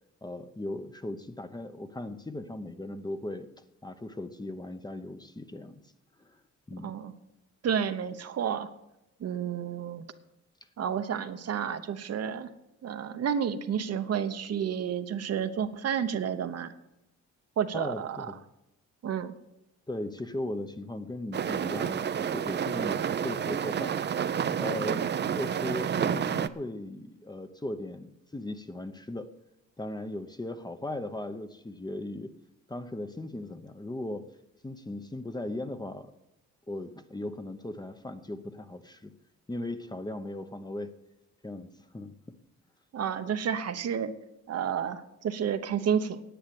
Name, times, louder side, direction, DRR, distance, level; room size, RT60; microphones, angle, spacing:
voice 1, 0.2-3.5 3.8-5.8 6.2-6.4 6.7-6.9 17.7-18.4 19.9-24.0 24.6-29.3 29.8-32.3 32.7-34.3 34.6-36.1 36.7-39.1 39.5-40.9 41.4-42.4, left 1 dB, 15° left, 9 dB, 0.8 m, -38 dB
voice 2, 6.8-7.1 7.6-8.7 9.2-10.0 10.8-12.5 12.8-16.7 17.6-18.3 19.0-19.3 42.9-44.1 44.5-46.2, right 8 dB, 55° right, 9 dB, 0.9 m, -30 dB
sound 1, 21.3-26.5, right 8 dB, 35° right, 0.5 m, -29 dB
10.0 x 8.8 x 7.7 m, 0.90 s
cardioid pair, 90°, 30 cm